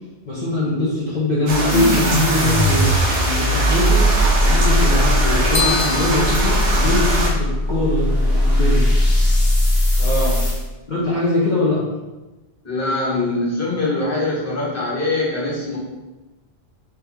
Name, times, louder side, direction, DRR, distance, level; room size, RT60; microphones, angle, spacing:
voice 1, 0.3-4.1 4.4-8.8 10.9-11.8, left 2 dB, 50° left, -7 dB, 0.8 m, -22 dB
sound 1, 1.5-7.3, right 1 dB, 50° right, 0.8 m, -22 dB
sound 2, 1.7-10.6, equal, 70° left, 1.3 m, -19 dB
sound 3, 5.5-7.5, left 6 dB, 85° left, 1.0 m, -26 dB
voice 2, 10.0-10.5 12.6-15.8, left 2 dB, 15° left, -7 dB, 1.0 m, -23 dB
3.4 x 2.8 x 3.4 m, 1.1 s
omnidirectional pair, 1.1 m